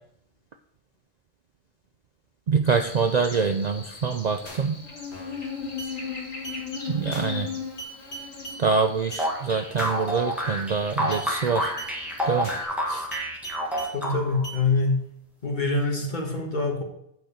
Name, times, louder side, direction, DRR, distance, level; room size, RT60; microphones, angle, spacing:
voice 1, 2.5-4.8 6.9-7.5 8.6-11.7 12.3-12.5 12.9-13.1, right 5 dB, 75° right, 6 dB, 0.3 m, -25 dB
Buzz, 2.7-12.7, left 5 dB, 75° left, 2.4 m, -38 dB
sound 1, 4.5-4.8 5.1-5.4 5.8-5.9 6.4-6.6 7.1-7.4 7.8-8.6 9.1-9.3 9.8-10.1 10.4-10.8 11.1-11.3 11.8-11.9 12.4-12.8 13.1-13.9 14.4-14.6, right 2 dB, 55° left, 2.1 m, -39 dB
sound 2, 9.2-14.5, equal, ahead, 1.6 m, -28 dB
voice 2, 13.9-15.1 15.4-16.8, left 3 dB, 35° left, 1 dB, 1.7 m, -25 dB
9.1 x 5.2 x 5.0 m, 0.75 s
omnidirectional pair, 1.4 m